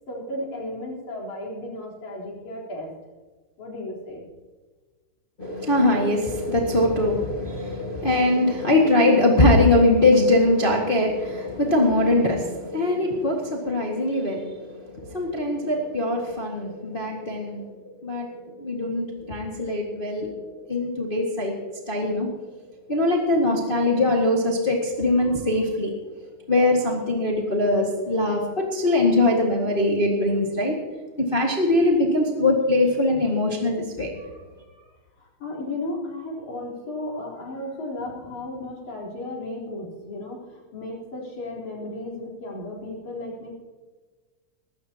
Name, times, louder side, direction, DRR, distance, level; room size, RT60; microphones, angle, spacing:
voice 1, 0.1-2.9 3.6-4.2 25.2-25.4 34.2-34.9 35.2-43.5, left 1 dB, 70° left, -3 dB, 5.4 m, -35 dB
voice 2, 5.4-22.3 22.9-26.0 26.5-30.7 31.2-34.1, left 2 dB, 20° left, -1 dB, 1.5 m, -22 dB
19.5 x 16.0 x 2.9 m, 1.3 s
omnidirectional pair, 3.5 m